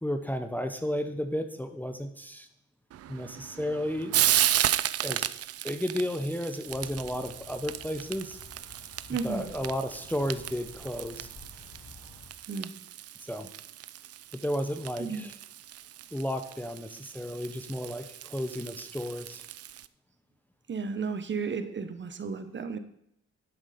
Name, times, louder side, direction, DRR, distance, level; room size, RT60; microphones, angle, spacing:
voice 1, 0.0-2.5 3.1-4.2 5.0-5.3 5.6-8.4 9.2-11.3 13.3-13.5 14.3-15.3 16.1-19.4, equal, 5° left, 7 dB, 0.8 m, -33 dB
Frying (food), 2.9-19.9, right 12 dB, 55° right, 0.5 m, -34 dB
sound 1, 6.7-12.3, left 3 dB, 60° left, 2.6 m, -51 dB
voice 2, 9.1-9.5 12.5-12.7 15.0-15.3 20.7-22.8, right 5 dB, 40° right, 9 dB, 1.1 m, -33 dB
11.5 x 6.3 x 5.1 m, 0.73 s
cardioid pair, 90°, 30 cm